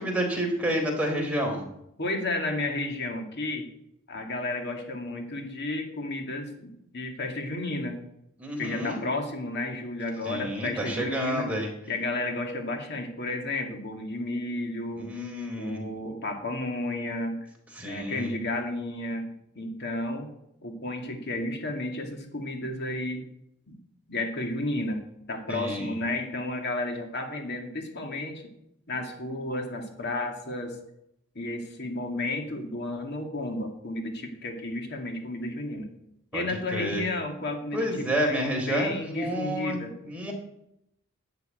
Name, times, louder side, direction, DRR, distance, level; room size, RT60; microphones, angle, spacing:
voice 1, 0.0-1.6 8.4-9.0 10.2-11.7 15.0-15.8 17.8-18.3 25.5-25.9 36.3-37.0 37.7-39.8 40.0-40.3, equal, 5° right, -1 dB, 3.8 m, -29 dB
voice 2, 2.0-3.7 4.1-8.0 8.6-11.5 11.9-15.1 15.6-17.5 17.8-20.3 20.6-23.3 23.7-23.8 24.1-28.5 28.9-30.8 31.3-35.9 36.3-37.9 38.2-39.9, left 2 dB, 55° left, 3 dB, 2.3 m, -32 dB
11.5 x 6.7 x 9.3 m, 0.80 s
head